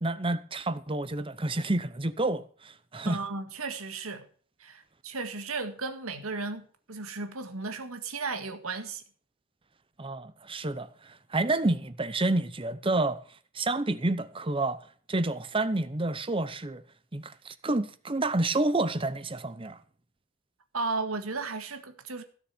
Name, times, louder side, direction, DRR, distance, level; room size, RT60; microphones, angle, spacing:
voice 1, 0.0-3.2 10.0-10.9 11.3-13.2 13.5-14.8 15.1-16.8 17.1-19.8, right 2 dB, 25° right, 0.8 m, -29 dB
voice 2, 3.1-4.2 4.6-9.0 20.7-22.2, right 3 dB, 90° right, 1.9 m, -35 dB
16.5 x 7.0 x 6.0 m
head